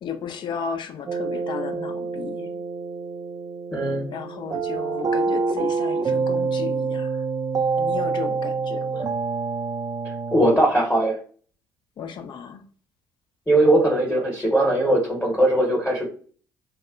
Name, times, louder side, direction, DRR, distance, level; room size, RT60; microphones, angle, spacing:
voice 1, 0.0-2.5 4.1-7.2 7.8-9.1 12.0-12.6, left 7 dB, 45° left, 7 dB, 0.5 m, -34 dB
sound 1, 1.1-10.6, right 4 dB, 35° right, 0.4 m, -27 dB
voice 2, 3.7-4.1 10.3-11.1 13.5-16.1, right 1 dB, 10° left, -1 dB, 1.0 m, -20 dB
3.5 x 2.1 x 2.3 m, 0.44 s
figure-of-eight pair, 55°, 11 cm